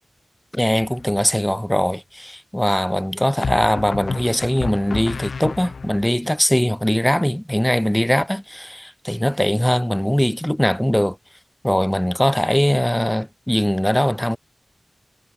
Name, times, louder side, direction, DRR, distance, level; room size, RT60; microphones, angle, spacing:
voice 1, 0.5-11.2 11.6-14.4, equal, 5° left, 0.3 m, -21 dB
sound 1, 0.8-1.3 3.4-6.1, left 5 dB, 85° left, 0.4 m, -30 dB
wide cardioid pair, 100°, 0 cm